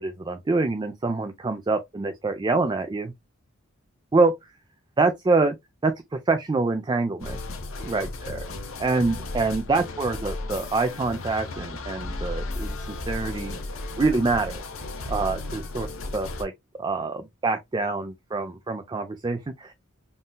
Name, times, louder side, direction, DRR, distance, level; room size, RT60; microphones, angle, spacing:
voice 1, 0.0-3.1 4.1-4.3 5.0-5.6 5.8-7.4 7.8-8.4 8.8-13.6 14.0-14.6 15.1-15.9 16.1-16.5 16.8-19.7, right 3 dB, 20° right, 0.3 m, -25 dB
sound 1, 7.2-16.4, left 2 dB, 70° left, 0.7 m, -34 dB
3.7 x 2.6 x 2.2 m
head